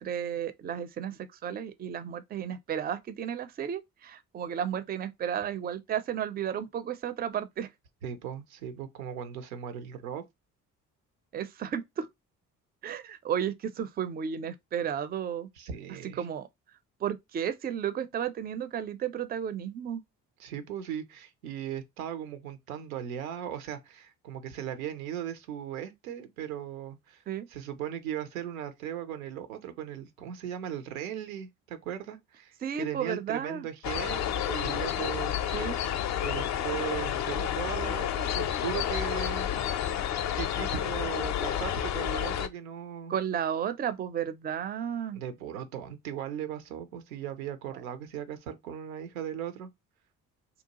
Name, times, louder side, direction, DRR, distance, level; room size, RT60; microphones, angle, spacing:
voice 1, 0.0-7.7 11.3-12.1 12.8-15.5 16.2-16.5 17.0-20.0 27.3-27.5 32.6-33.7 35.5-35.8 43.1-45.2 47.7-47.8, right 8 dB, 25° right, 0.4 m, -33 dB
voice 2, 8.0-10.2 15.6-16.3 20.4-27.2 27.5-35.8 36.2-39.5 40.3-43.1 45.1-49.7, right 9 dB, 80° right, 0.6 m, -38 dB
sound 1, 33.8-42.5, left 10 dB, 45° left, 0.5 m, -30 dB
2.7 x 2.2 x 2.8 m
figure-of-eight pair, 45°, 41 cm